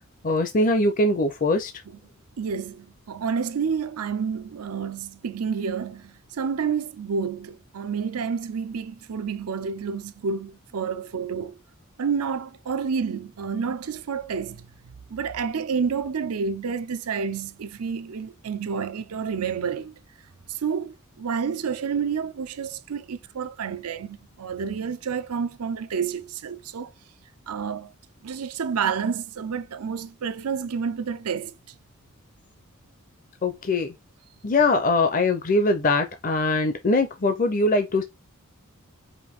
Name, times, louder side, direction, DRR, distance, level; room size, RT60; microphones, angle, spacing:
voice 1, 0.2-1.7 33.4-33.9 34.4-38.0, left 2 dB, 35° left, 0.5 m, -22 dB
voice 2, 2.4-11.6 12.0-20.0 20.5-26.9 27.5-27.9 28.2-31.5, right 6 dB, 90° right, 0.5 m, -29 dB
5.1 x 2.5 x 3.5 m
head